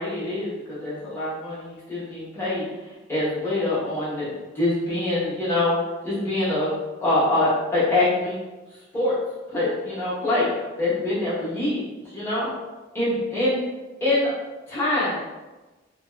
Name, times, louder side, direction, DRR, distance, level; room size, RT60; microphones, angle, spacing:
voice 1, 0.0-2.6 3.1-4.3 4.5-5.8 6.0-6.7 7.0-8.4 8.9-9.1 9.5-12.5 12.9-13.6 14.0-14.3 14.7-15.2, left 2 dB, 15° left, -11 dB, 1.1 m, -24 dB
2.5 x 2.1 x 2.3 m, 1.2 s
head